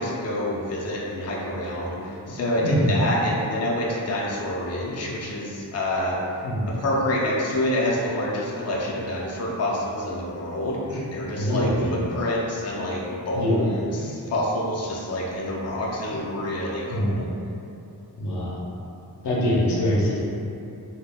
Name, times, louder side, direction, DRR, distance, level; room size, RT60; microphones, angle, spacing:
voice 1, 0.0-2.0 2.3-6.2 6.7-10.8 11.1-17.3, left 1 dB, 40° left, -4 dB, 0.5 m, -27 dB
voice 2, 2.6-3.0 6.4-6.7 10.9-11.0 11.4-11.9 13.3-13.6 16.1-16.2 16.9-17.2 18.2-18.6 19.2-20.2, equal, 85° left, -6 dB, 0.7 m, -24 dB
3.3 x 2.3 x 2.2 m, 2.7 s
cardioid pair, 40°, 40 cm